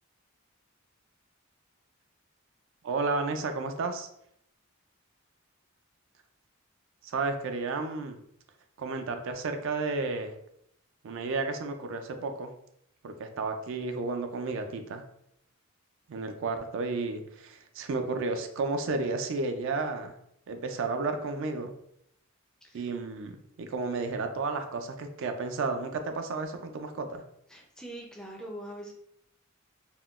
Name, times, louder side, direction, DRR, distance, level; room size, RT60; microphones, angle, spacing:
voice 1, 2.8-4.1 7.0-8.2 8.8-10.3 11.0-12.5 13.0-15.0 16.1-20.1 20.5-21.7 22.7-27.2, right 3 dB, 65° right, 6 dB, 0.4 m, -32 dB
voice 2, 27.5-28.9, right 1 dB, 5° left, -1 dB, 0.4 m, -42 dB
3.6 x 2.1 x 2.3 m, 0.73 s
head